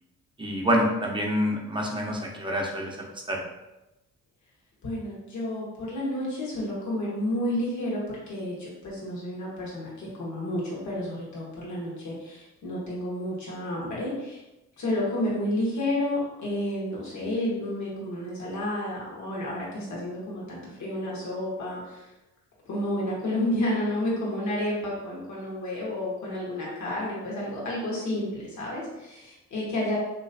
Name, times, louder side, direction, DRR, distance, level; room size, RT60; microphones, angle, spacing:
voice 1, 0.4-3.0 3.3-3.4, equal, 15° right, -1 dB, 0.7 m, -26 dB
voice 2, 4.8-14.4 14.8-22.1 22.7-30.0, left 1 dB, 70° left, -5 dB, 1.4 m, -31 dB
3.1 x 3.0 x 2.7 m, 0.97 s
cardioid pair, 90°, 30 cm